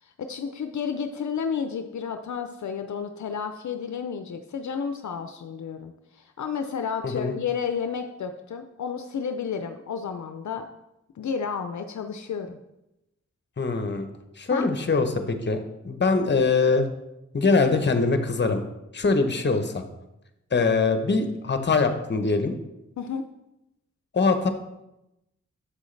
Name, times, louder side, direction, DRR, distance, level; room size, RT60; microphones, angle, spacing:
voice 1, 0.2-10.6 11.2-12.6 14.5-14.7 23.0-23.2, left 6 dB, 75° left, 7 dB, 0.5 m, -31 dB
voice 2, 13.6-14.1 14.4-15.6 15.8-16.8 17.3-18.6 18.9-19.8 20.5-22.5 24.1-24.5, left 4 dB, 35° left, 8 dB, 0.8 m, -23 dB
7.5 x 6.2 x 3.2 m, 0.91 s
wide cardioid pair, 70°, 29 cm